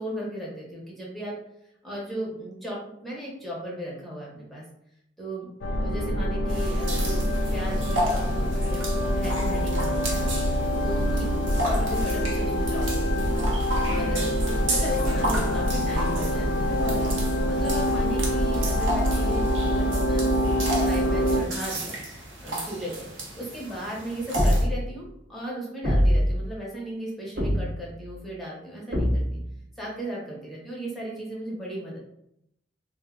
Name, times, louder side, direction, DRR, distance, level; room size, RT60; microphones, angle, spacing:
voice 1, 0.0-1.3 1.8-4.6 5.2-5.5 5.8-10.3 10.8-11.2 11.6-13.4 13.8-14.3 14.7-17.1 17.4-20.3 20.8-22.0 22.4-23.1 23.3-29.4 29.8-32.0, right 1 dB, ahead, -5 dB, 0.7 m, -36 dB
sound 1, 5.6-21.4, equal, 75° left, 0.4 m, -25 dB
sound 2, 6.5-24.6, right 1 dB, 80° right, 0.8 m, -34 dB
sound 3, 24.4-25.0 25.8-26.4 27.4-28.0 28.9-29.5, equal, 55° right, 0.8 m, -23 dB
2.6 x 2.1 x 3.5 m, 0.78 s
head